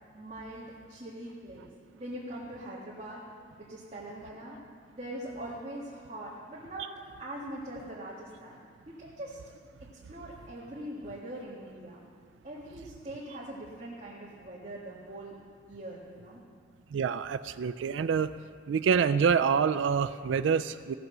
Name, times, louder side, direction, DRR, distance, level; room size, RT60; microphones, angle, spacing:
voice 1, 0.1-3.2 3.7-4.6 4.9-6.9 7.2-8.6 8.9-9.4 9.8-12.0 12.4-15.4 15.7-16.4, right 1 dB, 35° right, -7 dB, 1.7 m, -42 dB
voice 2, 16.9-18.3 18.7-20.9, right 6 dB, 85° right, 11 dB, 0.3 m, -26 dB
16.5 x 6.0 x 6.6 m, 2.1 s
head